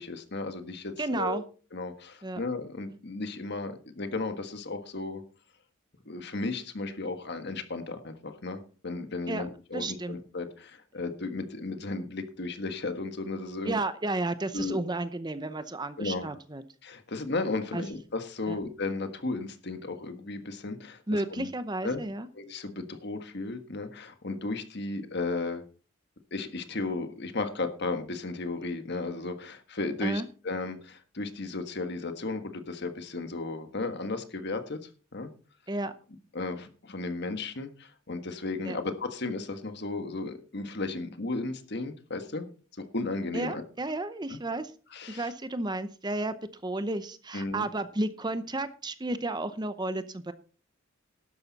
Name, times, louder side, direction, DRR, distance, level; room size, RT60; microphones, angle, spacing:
voice 1, 0.0-1.4 1.7-5.2 6.0-13.8 14.5-14.8 16.0-16.3 16.8-21.5 21.8-22.0 22.3-25.6 26.3-34.8 35.1-35.3 36.3-42.4 42.8-43.6 44.3-44.4 44.9-45.3 47.3-47.7, left 3 dB, 55° left, 8 dB, 1.6 m, -34 dB
voice 2, 1.0-1.4 2.2-2.4 9.3-9.5 9.7-10.2 13.6-16.6 17.7-17.8 18.5-18.6 21.1-22.3 30.0-30.2 35.7-35.9 38.6-38.8 43.3-44.7 45.1-46.3 46.6-50.3, right 2 dB, 20° right, 12 dB, 0.7 m, -32 dB
12.0 x 10.5 x 4.1 m, 0.38 s
head